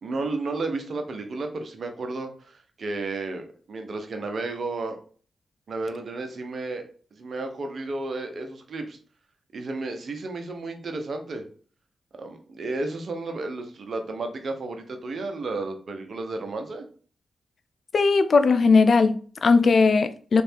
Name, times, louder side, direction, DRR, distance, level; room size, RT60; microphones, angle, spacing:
voice 1, 0.0-5.0 5.7-6.8 7.1-9.0 9.5-11.4 12.2-16.8, right 3 dB, 60° right, 1.0 m, -32 dB
voice 2, 17.9-20.4, left 4 dB, 60° left, 0.5 m, -18 dB
3.5 x 3.3 x 4.5 m
supercardioid pair, 45°, 0 cm